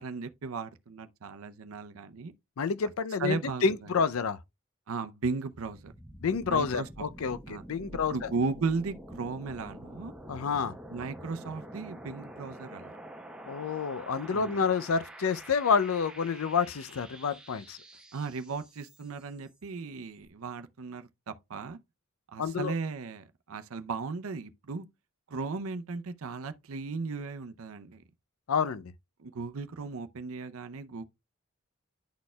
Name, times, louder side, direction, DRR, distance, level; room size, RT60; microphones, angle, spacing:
voice 1, 0.0-2.3 3.2-3.9 4.9-5.9 6.4-7.1 7.5-7.6 8.1-10.1 10.9-12.9 14.3-14.7 18.1-21.8 22.3-24.9 25.3-28.0 29.2-31.0, right 4 dB, 80° right, 0.6 m, -36 dB
voice 2, 2.6-4.4 6.2-8.1 10.3-10.7 13.5-17.8 22.4-22.7 28.5-28.9, left 5 dB, 80° left, 0.5 m, -29 dB
sound 1, 5.5-19.3, right 1 dB, 5° right, 0.9 m, -47 dB
11.5 x 4.2 x 2.2 m
head